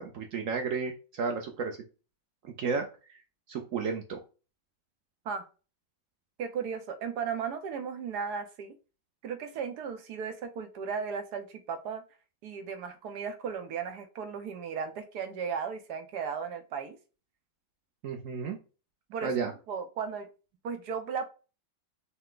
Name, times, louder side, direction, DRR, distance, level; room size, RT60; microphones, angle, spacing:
voice 1, 0.0-1.8 2.4-3.2 3.5-4.2 18.0-18.6 19.2-19.5, right 5 dB, 90° right, 3 dB, 0.7 m, -33 dB
voice 2, 6.4-8.7 9.2-12.0 12.4-17.0 19.1-19.3 19.7-20.3 20.6-21.2, right 6 dB, 65° right, 8 dB, 1.1 m, -35 dB
5.6 x 2.1 x 3.7 m, 0.33 s
omnidirectional pair, 2.1 m